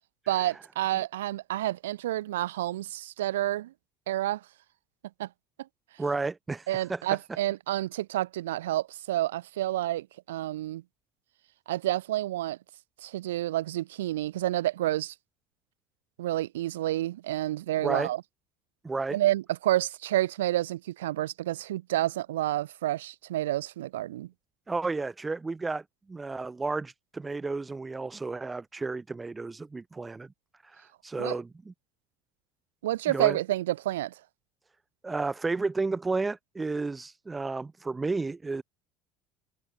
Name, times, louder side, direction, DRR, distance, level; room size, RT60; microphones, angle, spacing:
voice 1, 0.3-3.7 4.1-4.4 5.2-5.3 6.7-10.8 11.7-12.6 13.0-15.1 16.2-18.2 19.1-24.3 31.2-31.4 32.8-34.1, right 14 dB, 70° right, 2.5 m, -29 dB
voice 2, 6.0-7.0 17.8-18.1 18.8-19.2 24.7-30.3 30.6-31.7 33.1-33.4 35.0-38.6, right 3 dB, 20° right, 6.6 m, -32 dB
figure-of-eight pair, 65°, 0 cm